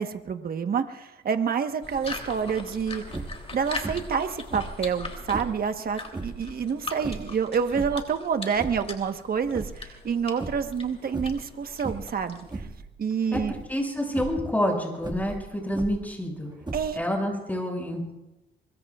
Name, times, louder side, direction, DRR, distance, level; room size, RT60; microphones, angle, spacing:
voice 1, 0.0-3.0 3.5-12.7 13.0-13.5 16.7-17.0, right 6 dB, 50° right, 7 dB, 1.3 m, -28 dB
sound 1, 1.8-12.7, left 3 dB, 30° left, 3.2 m, -41 dB
sound 2, 3.1-3.5 3.8-4.2 4.5-5.6 6.1-6.4 7.0-8.1 8.4-9.0 9.3-10.1 10.4-10.8 11.1-11.5 11.8-12.2 12.5-12.9 13.3-13.7 14.1-14.4 15.0-16.1 16.6-17.2, right 3 dB, 20° right, 1.9 m, -36 dB
voice 2, 13.7-16.5 16.9-18.1, equal, 10° left, 0 dB, 7.1 m, -28 dB
24.5 x 22.0 x 2.5 m, 0.95 s
cardioid pair, 90°, 20 cm